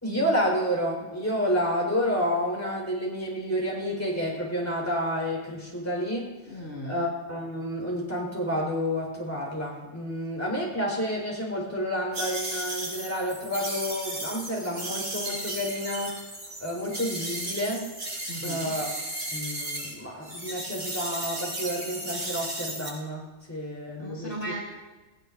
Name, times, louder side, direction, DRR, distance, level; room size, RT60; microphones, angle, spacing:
voice 1, 0.0-6.3 6.8-16.2 16.6-17.9 18.4-19.0 19.3-24.5, equal, 10° left, -3 dB, 4.4 m, -30 dB
voice 2, 6.5-7.0 18.3-18.7 24.0-24.6, equal, 40° left, -4 dB, 2.7 m, -36 dB
sound 1, 12.1-19.9 20.2-22.9, right 1 dB, 60° right, 5.6 m, -35 dB
20.0 x 19.0 x 2.7 m, 1.2 s
omnidirectional pair, 1.9 m